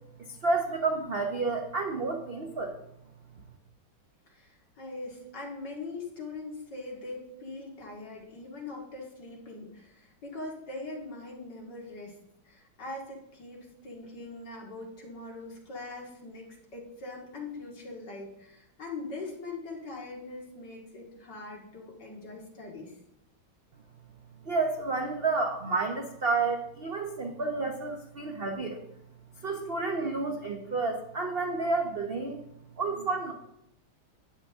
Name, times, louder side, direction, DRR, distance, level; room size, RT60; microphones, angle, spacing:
voice 1, 0.2-2.8 24.4-28.8 29.4-32.4 32.8-33.3, right 3 dB, 55° right, 3 dB, 0.6 m, -30 dB
voice 2, 4.8-12.2 12.4-22.9, left 3 dB, 55° left, -1 dB, 2.7 m, -42 dB
12.5 x 9.5 x 3.5 m, 0.79 s
omnidirectional pair, 2.2 m